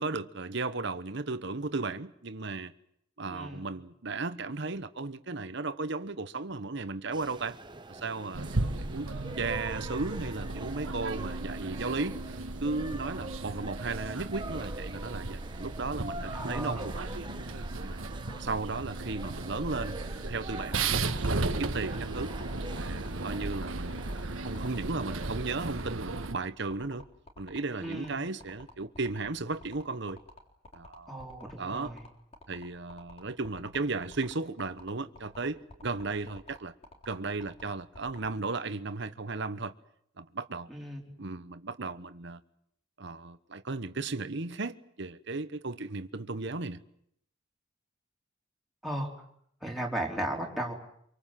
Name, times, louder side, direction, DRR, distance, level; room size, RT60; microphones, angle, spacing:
voice 1, 0.0-2.7 3.2-7.6 7.9-9.1 9.4-12.2 12.6-17.0 17.7-18.0 18.4-21.0 21.3-22.3 22.7-23.9 24.4-27.0 27.4-30.2 30.7-31.3 31.6-31.9 32.5-36.7 37.0-39.7 40.2-40.7 41.2-42.4 43.0-46.8, right 3 dB, 60° right, 1.1 m, -35 dB
voice 2, 3.3-3.7 16.3-16.9 27.8-28.2 31.1-32.0 40.7-41.0 48.8-49.1 49.6-50.7, right 1 dB, ahead, 4.1 m, -35 dB
sound 1, 7.1-25.9, right 2 dB, 20° right, 1.1 m, -45 dB
sound 2, 8.3-26.3, right 3 dB, 80° right, 1.4 m, -35 dB
sound 3, 20.5-38.3, left 2 dB, 30° left, 3.7 m, -50 dB
26.0 x 24.0 x 7.6 m
head